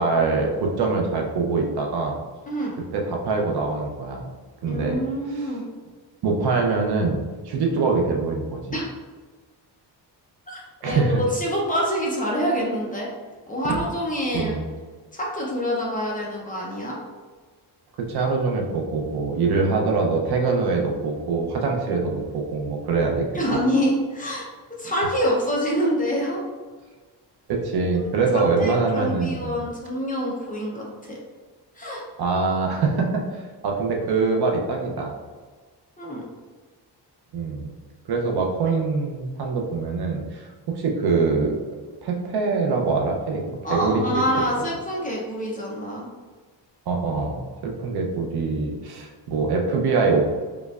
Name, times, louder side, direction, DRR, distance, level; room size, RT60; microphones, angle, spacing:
voice 1, 0.0-2.2 2.9-4.2 4.6-5.0 5.3-5.5 6.2-8.6 10.8-11.2 14.3-14.6 18.0-23.2 23.5-23.6 27.5-29.6 32.2-35.1 37.3-37.7 38.1-41.5 42.0-43.4 43.7-44.2 46.9-50.3, right 4 dB, 60° right, 1 dB, 0.7 m, -24 dB
voice 2, 4.7-5.7 8.7-8.8 10.5-13.1 13.5-14.6 15.1-17.0 23.3-24.5 24.8-26.4 28.0-31.2 31.8-32.0 36.0-36.2 43.6-46.1, equal, 20° left, -4 dB, 0.5 m, -26 dB
5.1 x 2.3 x 2.3 m, 1.4 s
wide cardioid pair, 175°, 43 cm